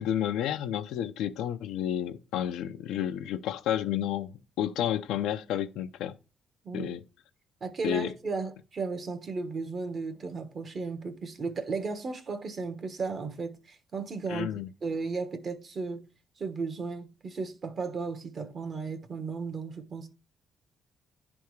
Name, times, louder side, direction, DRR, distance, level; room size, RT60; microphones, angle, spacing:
voice 1, 0.0-6.2 6.7-7.0 7.8-8.1 14.3-14.7, left 10 dB, 90° left, 0.5 m, -31 dB
voice 2, 7.6-14.5 14.8-16.1 16.4-20.1, right 4 dB, 45° right, 1.1 m, -35 dB
10.5 x 3.5 x 3.1 m
cardioid pair, 90°, 0 cm